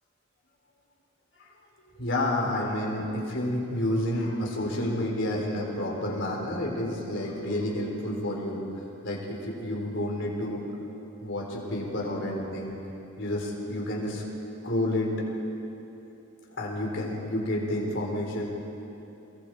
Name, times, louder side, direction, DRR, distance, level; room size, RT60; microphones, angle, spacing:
voice 1, 1.9-8.6 9.0-10.6 11.2-12.7 13.2-14.2 14.6-15.1 16.6-18.5, left 1 dB, 55° left, -2 dB, 4.5 m, -30 dB
29.0 x 22.0 x 5.0 m, 3.0 s
head